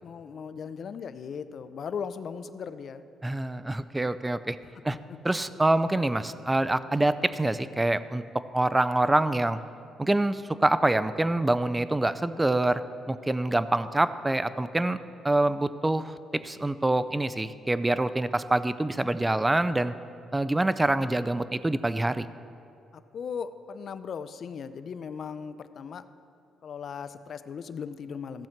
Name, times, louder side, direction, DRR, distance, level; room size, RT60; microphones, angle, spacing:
voice 1, 0.0-3.0 5.1-5.4 22.9-26.0 26.6-28.5, left 6 dB, 55° left, 12 dB, 0.5 m, -38 dB
voice 2, 3.2-4.6 4.8-5.0 5.2-8.2 8.5-9.6 10.0-15.0 15.2-19.9 20.3-22.3, right 2 dB, 15° right, 14 dB, 0.4 m, -26 dB
15.0 x 7.3 x 4.5 m, 2.5 s
cardioid pair, 90°, 0 cm